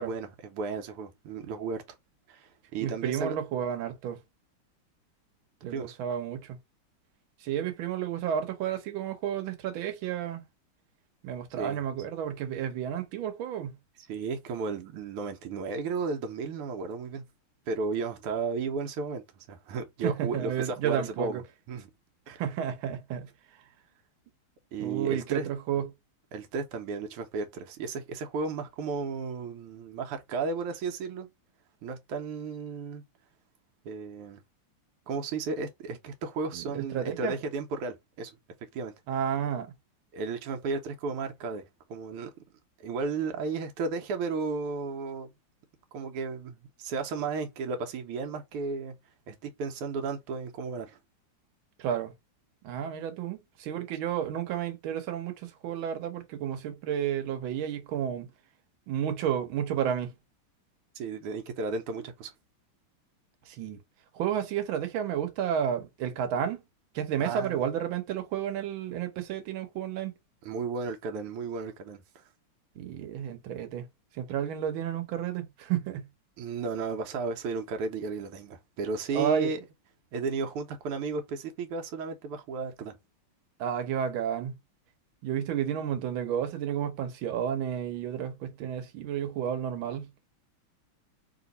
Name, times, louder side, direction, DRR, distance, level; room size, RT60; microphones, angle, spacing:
voice 1, 0.0-1.8 2.3-3.4 5.7-6.0 11.6-11.8 14.1-17.3 17.7-21.4 21.7-21.9 22.3-22.4 24.7-25.5 26.3-31.3 31.8-33.0 33.8-34.4 35.1-38.3 38.7-38.9 40.1-41.6 41.9-42.3 42.8-45.3 45.9-48.9 49.3-51.0 60.9-62.3 67.2-67.6 70.4-72.2 76.4-79.6 80.1-83.0, right 4 dB, 85° right, 1.6 m, -34 dB
voice 2, 2.8-4.2 5.6-6.6 7.4-10.4 11.2-13.8 20.0-21.4 22.3-23.3 24.8-25.9 36.5-37.3 39.1-39.7 51.8-52.1 52.6-58.3 58.9-60.1 63.5-63.8 64.1-66.6 66.9-70.1 72.8-73.9 74.1-76.1 79.1-79.5 83.6-84.6 85.2-90.1, right 9 dB, 70° right, 1.6 m, -31 dB
3.3 x 3.0 x 4.0 m
omnidirectional pair, 2.4 m